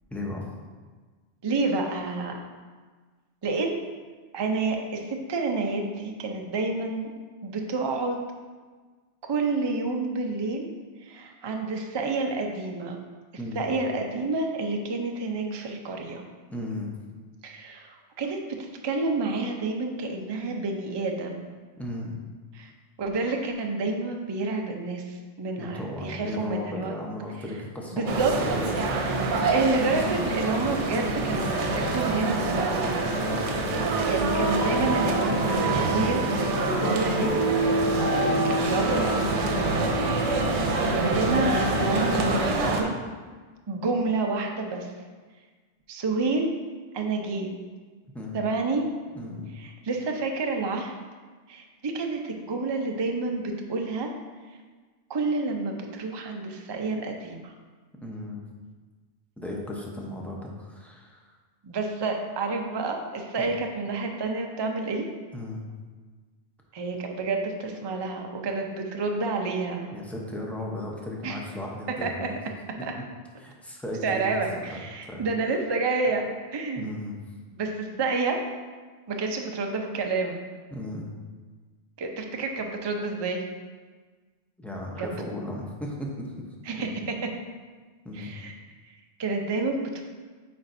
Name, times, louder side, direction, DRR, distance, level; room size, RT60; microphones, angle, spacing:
voice 1, 0.1-0.4 13.4-13.7 16.5-16.9 21.8-22.2 25.6-28.7 33.2-33.6 40.2-40.6 48.1-48.4 49.1-49.5 58.0-58.4 59.4-61.3 63.4-63.5 65.3-65.6 69.9-72.4 72.8-72.9 73.4-74.7 75.1-75.2 76.8-77.1 80.7-81.1 84.6-86.9 88.0-88.3, left 1 dB, ahead, -2 dB, 0.6 m, -36 dB
voice 2, 1.4-2.4 3.4-3.8 4.3-7.1 7.4-8.2 9.3-10.7 11.0-13.0 13.6-16.2 17.4-21.5 22.5-22.7 23.0-26.9 27.9-28.3 29.5-32.9 34.0-37.3 38.4-40.3 40.9-42.9 43.7-44.9 45.9-46.5 46.9-47.5 48.3-48.8 49.6-50.9 51.5-54.1 55.1-57.5 61.6-65.1 66.7-69.9 71.2-71.4 72.0-72.3 74.0-76.2 76.5-77.0 77.5-78.4 79.1-80.4 82.0-83.4 85.0-85.1 86.7-87.1 88.1-88.5 89.2-90.0, right 3 dB, 35° right, 3 dB, 0.4 m, -29 dB
sound 1, 28.1-42.8, right 2 dB, 80° right, 1.0 m, -26 dB
sound 2, 30.0-42.3, right 1 dB, 45° left, 1.0 m, -30 dB
8.2 x 4.4 x 2.6 m, 1.4 s
omnidirectional pair, 1.2 m